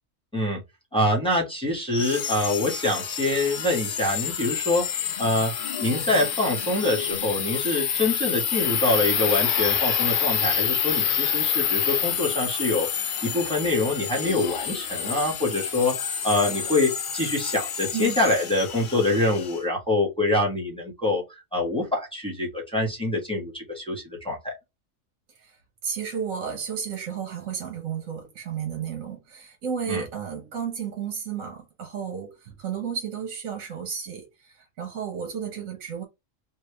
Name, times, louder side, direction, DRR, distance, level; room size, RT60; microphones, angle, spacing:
voice 1, 0.9-5.5 5.8-21.2 21.5-24.5 29.9-30.0, left 2 dB, 5° left, 1.4 m, -25 dB
sound 1, 1.9-19.6, left 8 dB, 55° left, 0.6 m, -28 dB
voice 2, 25.4-36.0, right 7 dB, 75° right, 1.4 m, -33 dB
3.5 x 2.5 x 3.3 m
omnidirectional pair, 1.4 m